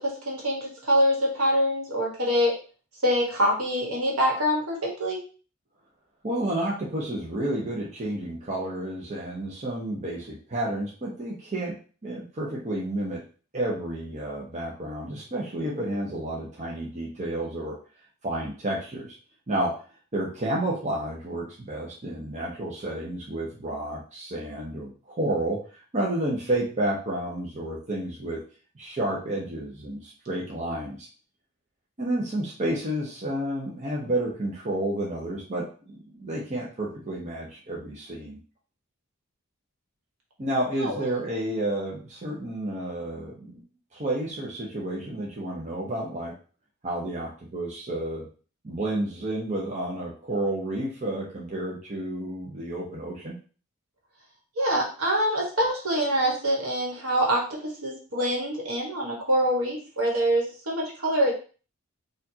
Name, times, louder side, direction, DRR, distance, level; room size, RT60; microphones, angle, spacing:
voice 1, 0.0-2.5 3.0-5.2 40.8-41.0 54.6-61.3, equal, 70° right, -2 dB, 1.4 m, -25 dB
voice 2, 6.2-11.8 12.0-13.2 13.5-17.8 18.2-19.2 19.5-19.7 20.1-25.6 25.9-28.4 28.8-31.1 32.0-38.4 40.4-43.6 43.9-46.3 46.8-48.3 48.6-53.4, right 1 dB, 35° right, -4 dB, 0.8 m, -30 dB
4.5 x 2.5 x 2.7 m, 0.38 s
head